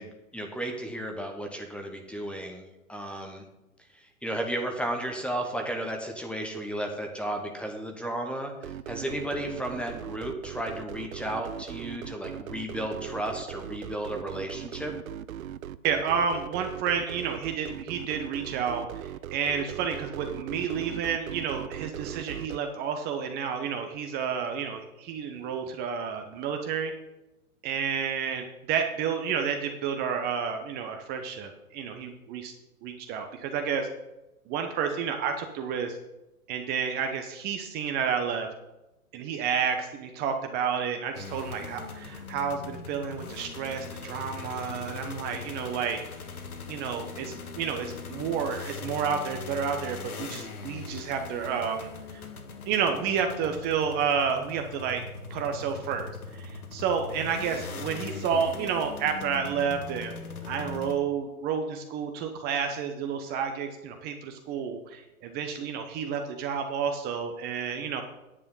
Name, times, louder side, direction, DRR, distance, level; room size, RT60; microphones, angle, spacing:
voice 1, 0.0-3.4 3.9-15.0, right 1 dB, 5° left, 3 dB, 1.0 m, -34 dB
sound 1, 8.6-22.6, right 10 dB, 70° right, 0.7 m, -39 dB
voice 2, 15.8-26.9 27.6-32.5 32.8-33.9 34.5-36.0 36.5-38.5 39.1-46.0 46.7-52.2 52.7-55.0 55.3-60.1 60.4-68.0, right 7 dB, 20° right, 5 dB, 0.9 m, -30 dB
sound 2, 41.1-61.0, left 4 dB, 75° left, 2.0 m, -40 dB
9.9 x 8.6 x 5.5 m, 0.98 s
hypercardioid pair, 125°, 44 cm